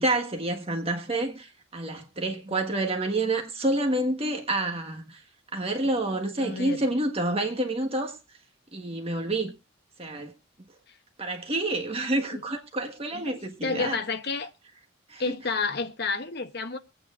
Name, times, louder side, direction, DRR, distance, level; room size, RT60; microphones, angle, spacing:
voice 1, 0.0-5.2 5.5-8.2 8.7-9.5 10.0-10.3 11.2-13.9 15.1-15.2, right 2 dB, 30° right, 1.4 m, -28 dB
voice 2, 6.4-6.8 10.9-11.0 12.3-12.4 13.1-14.5 15.2-16.8, left 4 dB, 55° left, 1.0 m, -31 dB
22.5 x 9.0 x 2.4 m
head